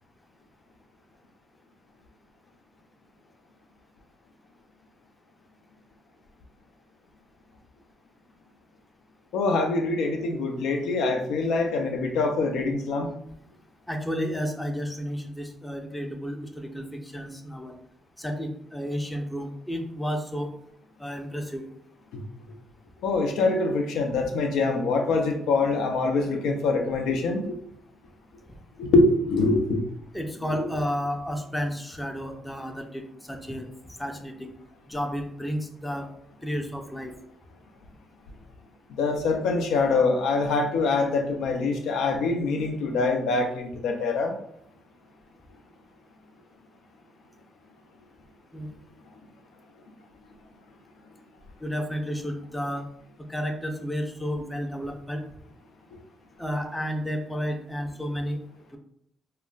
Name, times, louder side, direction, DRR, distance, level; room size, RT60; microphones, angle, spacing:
voice 1, 9.3-13.1 23.0-27.4 28.8-29.8 30.4-30.7 39.0-44.3, left 3 dB, 85° left, 3 dB, 0.4 m, -24 dB
voice 2, 13.9-17.8 18.2-20.5 21.0-21.6 30.1-33.7 34.0-34.5 34.9-36.1 36.4-37.1 48.5-48.7 51.6-52.8 53.3-55.2 56.4-58.4 58.7-58.8, equal, 10° left, 4 dB, 0.4 m, -32 dB
2.3 x 2.1 x 3.7 m, 0.70 s
cardioid pair, 90°, 0 cm